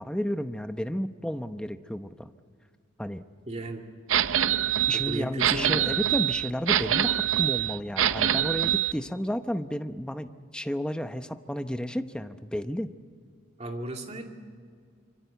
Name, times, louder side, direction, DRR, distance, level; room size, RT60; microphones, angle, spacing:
voice 1, 0.0-2.3 3.0-3.2 4.9-12.9, equal, 5° left, 9 dB, 0.8 m, -32 dB
voice 2, 3.5-3.8 4.9-5.7 13.6-14.2, right 1 dB, 35° right, 3 dB, 2.6 m, -35 dB
sound 1, 4.1-8.9, right 11 dB, 75° right, 0.6 m, -25 dB
26.0 x 24.5 x 8.2 m, 2.1 s
head